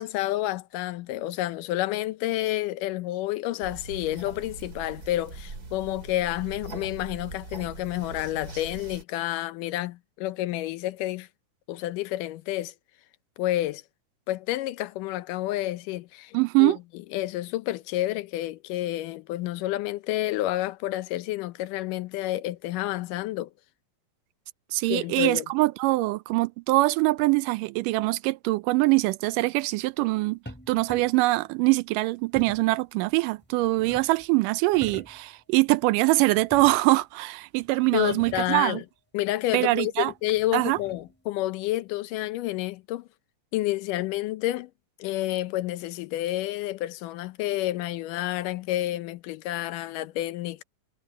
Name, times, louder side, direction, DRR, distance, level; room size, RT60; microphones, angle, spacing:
voice 1, 0.0-11.3 11.7-12.7 13.4-13.8 14.3-16.7 17.1-23.5 24.9-25.5 37.9-38.8 39.1-43.1 43.5-44.7 45.0-50.6, left 15 dB, 80° left, 2.3 m, -29 dB
sound 1, 3.6-9.0, right 3 dB, 30° right, 2.8 m, -41 dB
voice 2, 16.3-16.8 24.7-30.4 30.7-38.8 39.5-40.1 40.5-40.8, right 21 dB, 85° right, 2.2 m, -23 dB
sound 2, 30.5-31.3 32.3-32.8 33.4-34.3 34.6-35.3 36.3-37.0 37.6-37.7 38.0-38.7 40.1-41.2, equal, 5° left, 5.3 m, -45 dB
omnidirectional pair, 3.8 m